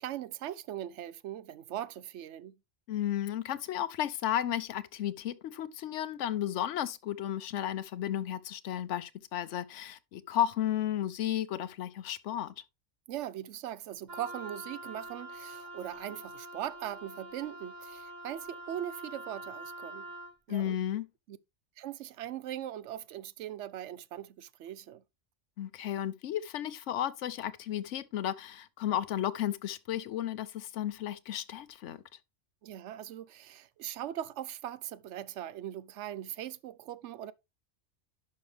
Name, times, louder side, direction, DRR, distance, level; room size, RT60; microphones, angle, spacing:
voice 1, 0.0-2.6 13.1-20.1 20.5-20.8 21.3-21.4 21.8-25.0 32.6-37.3, right 11 dB, 75° right, 0.9 m, -40 dB
voice 2, 2.9-12.5 20.5-21.1 25.6-32.0, left 11 dB, 80° left, 1.0 m, -33 dB
Wind instrument woodwind instrument, 14.1-20.4, right 1 dB, 40° right, 1.2 m, -45 dB
10.5 x 5.7 x 3.2 m
omnidirectional pair, 1.2 m